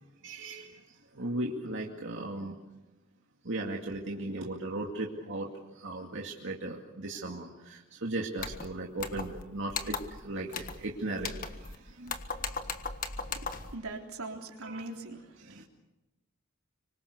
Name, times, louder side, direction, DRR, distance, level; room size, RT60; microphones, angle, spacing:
voice 1, 0.2-0.8 1.1-2.6 3.4-5.5 5.8-10.0 10.2-12.1 12.5-12.6 14.6-14.8 15.4-15.6, right 2 dB, 60° right, -1 dB, 2.3 m, -37 dB
sound 1, 8.4-8.7 9.0-9.4 9.7-10.2 10.5-10.8 11.2-11.8 12.1-13.7, left 4 dB, 40° left, 1.5 m, -37 dB
voice 2, 13.4-15.6, right 2 dB, 85° right, 2 dB, 3.6 m, -42 dB
25.5 x 24.5 x 6.8 m, 1.0 s
head